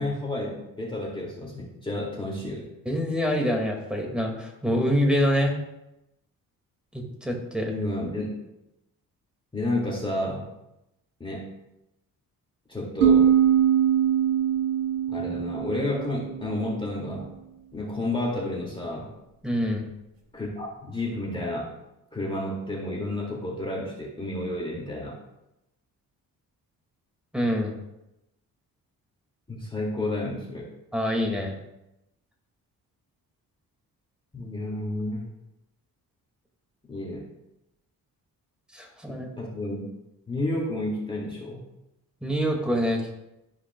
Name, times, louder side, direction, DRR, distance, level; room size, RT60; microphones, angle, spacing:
voice 1, 0.0-2.7 7.7-8.3 9.5-10.5 11.2-11.5 12.7-13.3 15.1-17.3 17.7-19.1 20.3-21.7 22.1-25.2 29.5-30.7 34.3-35.3 36.9-37.3 39.1-39.8 40.3-41.6, left 1 dB, 15° left, -4 dB, 2.0 m, -31 dB
voice 2, 2.9-5.5 6.9-7.7 19.4-19.8 27.3-27.7 30.9-31.6 38.7-39.3 42.2-43.1, equal, 5° right, 1 dB, 1.9 m, -25 dB
sound 1, 13.0-16.6, right 9 dB, 70° right, 1.2 m, -22 dB
13.0 x 4.9 x 2.2 m, 0.89 s
cardioid pair, 95°, 35 cm